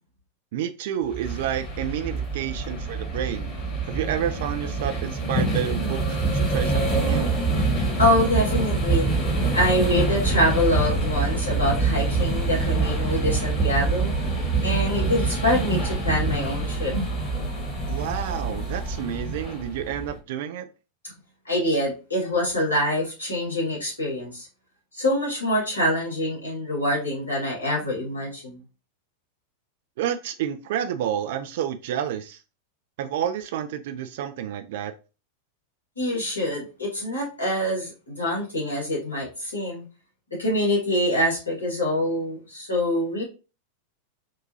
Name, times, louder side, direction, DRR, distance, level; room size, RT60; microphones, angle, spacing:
voice 1, 0.5-3.5 3.8-7.3 17.9-20.7 30.0-32.4 33.0-34.9, right 9 dB, 55° right, 9 dB, 0.3 m, -30 dB
sound 1, 1.1-20.2, right 3 dB, 30° left, 1.5 m, -25 dB
voice 2, 8.0-9.1 9.5-14.1 14.6-17.1 21.5-24.5 24.9-28.6 36.0-39.8 40.4-43.2, left 1 dB, 80° left, -4 dB, 2.0 m, -25 dB
3.5 x 2.7 x 2.8 m, 0.32 s
figure-of-eight pair, 90°, 0 cm